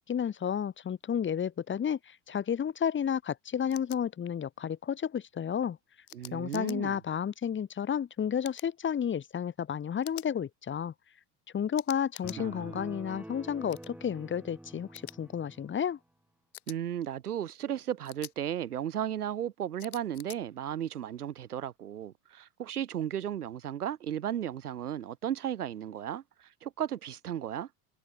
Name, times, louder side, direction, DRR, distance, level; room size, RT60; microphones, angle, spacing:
voice 1, 0.0-5.8 6.3-10.9 11.5-16.0, left 8 dB, 25° left, 1.4 m, -32 dB
sound 1, 3.7-4.0 6.1-6.8 8.4-8.7 10.0-10.3 11.8-12.4 13.7-13.9 15.0-15.2 16.5-16.8 18.0-18.3 19.8-20.4, left 14 dB, 75° left, 5.6 m, -46 dB
voice 2, 6.1-7.0 12.4-12.8 16.7-27.7, right 10 dB, 80° right, 3.2 m, -35 dB
sound 2, 12.2-15.8, right 1 dB, 5° right, 7.3 m, -46 dB
hypercardioid pair, 75°, 44 cm